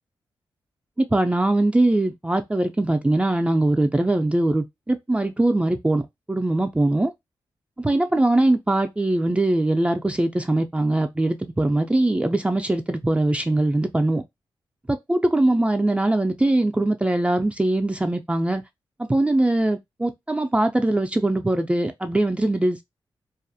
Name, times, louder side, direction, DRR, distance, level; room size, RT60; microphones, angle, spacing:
voice 1, 1.0-6.0 6.3-7.1 7.8-14.2 14.9-18.6 19.1-22.8, right 2 dB, 15° right, 0.3 m, -21 dB
2.3 x 2.1 x 2.6 m
cardioid pair, 65°, 9 cm